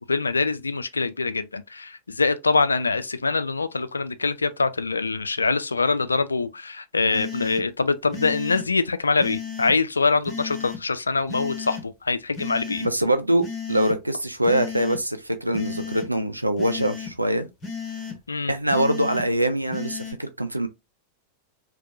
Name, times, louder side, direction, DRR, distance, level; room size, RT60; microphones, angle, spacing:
voice 1, 0.1-12.9 18.3-18.5, left 4 dB, 75° left, 0.3 m, -24 dB
sound 1, 7.1-7.6 8.1-8.6 9.2-9.7 10.3-10.8 11.3-11.8 12.4-12.9 13.4-13.9 14.4-15.0 15.5-16.1 16.6-17.1 17.6-18.2 18.7-19.2 19.7-20.1, left 6 dB, 20° left, 1.1 m, -34 dB
voice 2, 12.8-17.5 18.5-20.7, right 1 dB, 85° right, 0.5 m, -23 dB
4.2 x 2.2 x 2.5 m
figure-of-eight pair, 90°, 0 cm